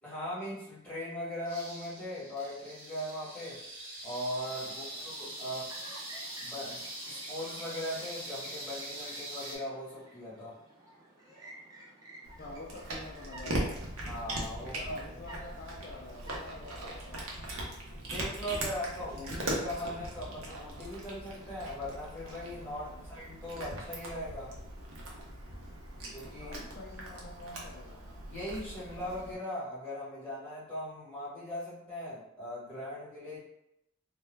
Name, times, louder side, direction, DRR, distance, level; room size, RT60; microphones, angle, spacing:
voice 1, 0.0-3.6 4.0-5.8 6.4-10.6 14.0-15.2 18.0-24.6 26.1-26.6 28.3-33.4, left 1 dB, 5° left, -9 dB, 1.0 m, -39 dB
sound 1, 1.4-9.6, right 1 dB, 65° right, 1.0 m, -43 dB
Chirp tweet, 4.4-19.5, right 1 dB, 15° right, 0.4 m, -54 dB
voice 2, 4.6-5.1 12.4-13.9 14.6-17.3 22.7-23.0 26.4-28.0, left 2 dB, 45° left, -3 dB, 0.3 m, -48 dB
Cat, 12.2-29.3, right 1 dB, 80° right, 0.6 m, -40 dB
2.2 x 2.1 x 3.1 m, 0.82 s
head